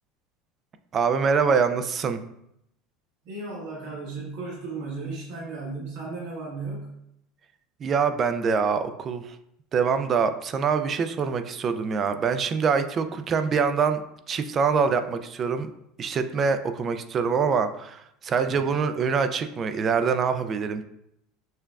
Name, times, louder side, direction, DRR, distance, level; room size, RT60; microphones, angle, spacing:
voice 1, 0.9-2.2 7.8-9.4 9.7-14.0 14.3-15.7 16.0-20.8, right 5 dB, 30° right, 9 dB, 0.3 m, -24 dB
voice 2, 3.2-6.9 13.1-13.2, right 3 dB, 70° right, -6 dB, 1.5 m, -35 dB
6.5 x 2.4 x 2.2 m, 0.77 s
supercardioid pair, 135°, 0 cm